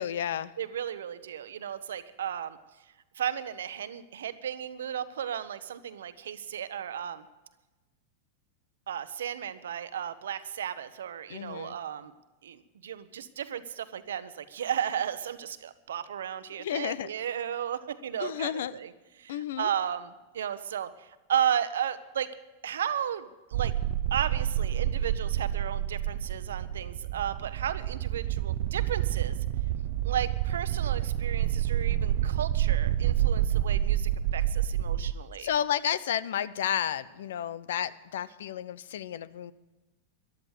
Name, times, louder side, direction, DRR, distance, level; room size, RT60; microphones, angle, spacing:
voice 1, 0.0-0.5 11.3-11.7 16.6-17.1 18.2-18.8 19.3-19.7 35.4-39.5, left 10 dB, 75° left, 18 dB, 0.6 m, -31 dB
voice 2, 0.6-2.6 3.1-7.2 8.9-12.1 12.4-18.9 19.2-22.3 22.6-23.7 24.1-29.4 30.0-35.5, right 9 dB, 80° right, 13 dB, 0.9 m, -34 dB
sound 1, 23.5-35.1, right 12 dB, 65° right, 0.5 m, -28 dB
14.0 x 11.0 x 6.5 m, 1.1 s
hypercardioid pair, 105°, 0 cm